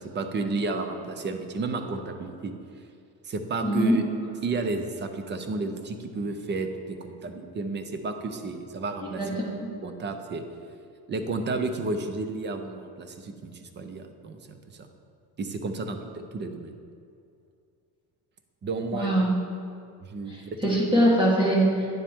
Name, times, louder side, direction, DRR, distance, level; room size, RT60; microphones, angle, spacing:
voice 1, 0.0-2.5 3.2-4.0 4.4-9.4 9.8-10.4 11.1-14.6 15.4-16.7 18.6-19.2 20.1-20.8, right 3 dB, 25° right, 7 dB, 0.5 m, -32 dB
voice 2, 3.6-4.0 9.0-9.5 18.9-19.3 20.3-20.4 20.6-21.9, equal, 10° right, -4 dB, 1.6 m, -22 dB
9.5 x 7.3 x 3.6 m, 2.4 s
cardioid pair, 155°, 40 cm